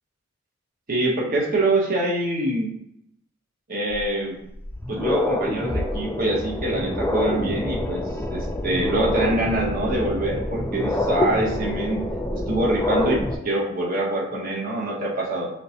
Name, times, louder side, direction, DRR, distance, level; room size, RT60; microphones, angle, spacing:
voice 1, 0.9-2.7 3.7-4.4 4.9-8.0 8.3-12.0 12.5-13.2 13.4-15.5, right 1 dB, 45° right, -3 dB, 0.9 m, -24 dB
sound 1, 3.9-4.0 4.5-13.3, left 1 dB, 10° left, 0.4 m, -26 dB
4.5 x 3.2 x 2.8 m, 0.77 s
head